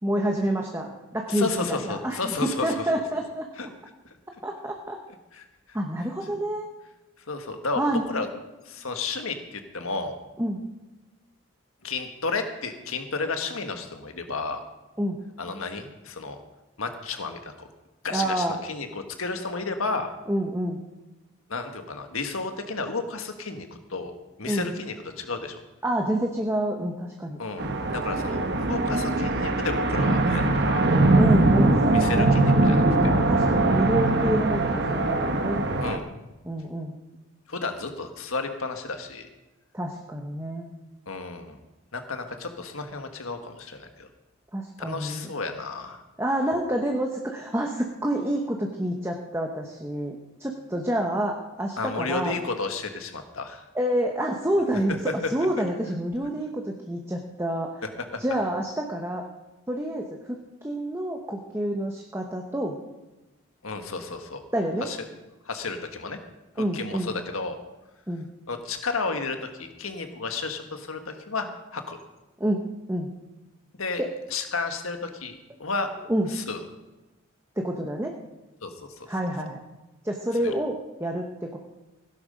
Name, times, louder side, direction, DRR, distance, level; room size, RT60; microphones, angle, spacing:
voice 1, 0.0-3.7 4.4-5.0 5.7-6.7 7.8-8.1 10.4-10.6 15.0-15.2 18.1-18.6 20.3-20.8 24.4-24.7 25.8-27.4 31.1-32.4 33.3-35.7 36.4-36.9 39.7-40.7 44.5-45.4 46.2-52.4 53.7-57.8 58.2-59.2 59.7-62.8 64.5-64.9 66.6-67.1 68.1-68.3 72.4-72.6 72.9-73.1 74.0-74.1 76.1-76.3 77.6-78.1 79.1-79.6 80.0-81.6, right 1 dB, 10° right, 2 dB, 1.0 m, -28 dB
voice 2, 1.3-2.9 3.6-3.7 4.0-4.1 5.3-5.8 7.3-8.3 8.6-10.2 11.8-14.6 15.4-16.4 16.8-17.7 18.0-20.1 21.5-25.5 27.4-30.9 31.9-33.1 35.8-36.1 37.5-39.3 41.1-41.6 41.9-44.1 44.8-46.0 51.8-53.6 55.0-55.3 58.1-58.2 63.6-64.4 64.8-65.0 65.4-66.2 66.6-67.6 68.5-72.0 73.8-74.0 74.3-75.9 76.3-76.6 78.6-79.1 80.4-80.5, left 4 dB, 80° left, 6 dB, 1.7 m, -32 dB
sound 1, 27.6-36.0, right 2 dB, 50° right, 1.1 m, -22 dB
17.0 x 11.0 x 5.2 m, 1.1 s
head